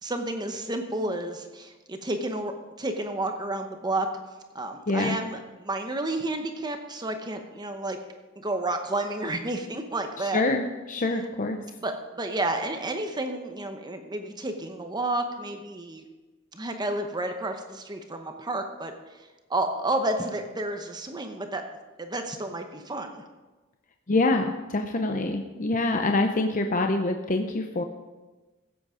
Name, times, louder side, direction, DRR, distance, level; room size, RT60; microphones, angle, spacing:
voice 1, 0.0-2.5 2.8-4.1 4.5-8.0 8.4-10.4 11.8-16.0 16.5-19.2 19.5-21.6 22.0-23.2, right 2 dB, 20° right, 5 dB, 0.8 m, -31 dB
voice 2, 4.9-5.2 10.3-11.6 24.1-27.8, left 2 dB, 40° left, 5 dB, 0.7 m, -25 dB
16.0 x 8.1 x 5.0 m, 1.2 s
head